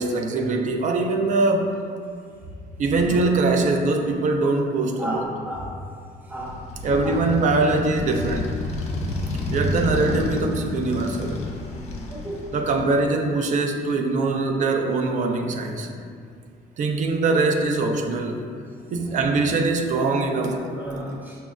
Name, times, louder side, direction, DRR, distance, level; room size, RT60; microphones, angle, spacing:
voice 1, 0.0-1.7 2.8-5.3 6.8-8.6 9.5-11.5 12.5-15.9 16.8-18.4 18.9-20.6, right 3 dB, 45° right, 3 dB, 0.4 m, -22 dB
voice 2, 5.0-5.7 6.3-6.6 7.0-7.2 9.3-9.5 12.1-12.4 18.9-19.2 20.6-21.4, equal, 10° right, -5 dB, 0.6 m, -33 dB
Motorcycle, 6.4-13.1, left 2 dB, 40° left, 0.4 m, -30 dB
5.4 x 2.0 x 2.3 m, 2.2 s
cardioid pair, 110°, 17 cm